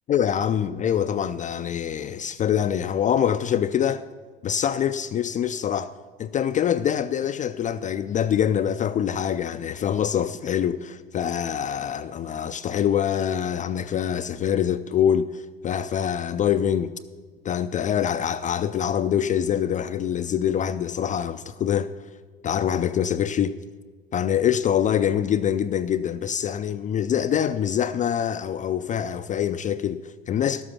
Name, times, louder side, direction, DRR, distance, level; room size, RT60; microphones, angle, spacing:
voice 1, 0.1-4.1 4.4-5.9 6.2-16.9 17.4-21.9 22.4-23.6 24.1-30.6, left 9 dB, 25° left, 0.4 m, -25 dB
12.0 x 7.7 x 6.0 m
hypercardioid pair, 80°, 29 cm